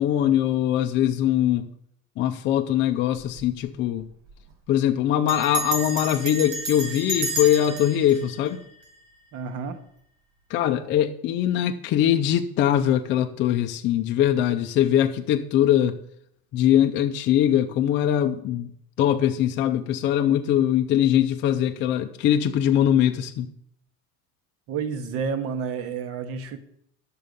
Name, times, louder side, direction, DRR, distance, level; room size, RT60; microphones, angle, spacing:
voice 1, 0.0-1.7 2.2-4.1 4.7-8.6 10.5-16.0 16.5-18.7 19.0-23.5, left 10 dB, 35° left, 0.5 m, -22 dB
Bell, 3.2-3.5 3.8-3.9 4.1-4.5 5.3-9.4, right 2 dB, 70° right, 2.4 m, -32 dB
voice 2, 9.3-9.8 24.7-26.6, right 6 dB, 45° right, 1.0 m, -30 dB
11.0 x 6.6 x 5.2 m
cardioid pair, 170°, 32 cm